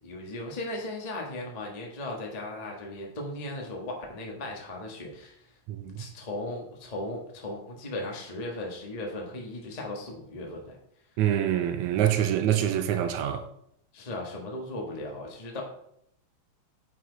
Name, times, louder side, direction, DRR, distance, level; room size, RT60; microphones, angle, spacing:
voice 1, 0.0-5.5 6.0-10.8 13.9-15.6, left 1 dB, 20° left, 1.0 m, -37 dB
voice 2, 5.7-6.0 11.2-13.4, right 10 dB, 85° right, 2.1 m, -25 dB
9.5 x 6.2 x 4.0 m
omnidirectional pair, 3.4 m